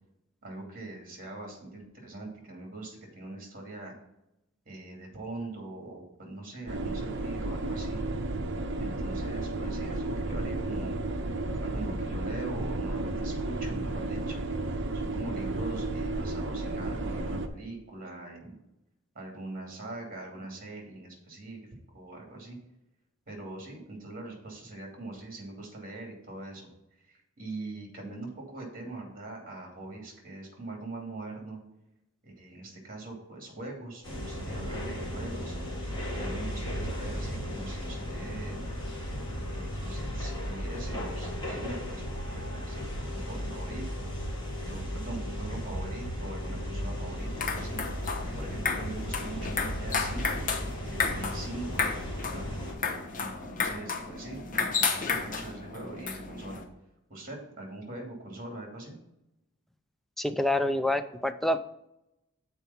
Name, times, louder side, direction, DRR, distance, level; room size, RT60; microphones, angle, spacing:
voice 1, 0.4-3.9 4.6-8.1 8.8-11.0 11.6-14.4 14.9-18.6 19.1-21.7 21.9-22.6 23.3-26.7 27.1-31.6 32.2-35.5 36.2-38.6 39.5-42.0 42.3-44.1 44.6-50.4 50.9-51.9 52.2-52.5 53.2-56.6 57.1-59.0, right 2 dB, 45° right, 1 dB, 2.6 m, -42 dB
sound 1, 6.7-17.5, right 2 dB, 60° right, 0.8 m, -32 dB
sound 2, 34.0-52.7, equal, 25° left, 2.0 m, -35 dB
sound 3, 47.2-56.6, left 4 dB, 40° left, 1.0 m, -33 dB
voice 2, 60.2-61.6, left 1 dB, ahead, 8 dB, 0.4 m, -27 dB
7.2 x 4.6 x 5.6 m, 0.86 s
head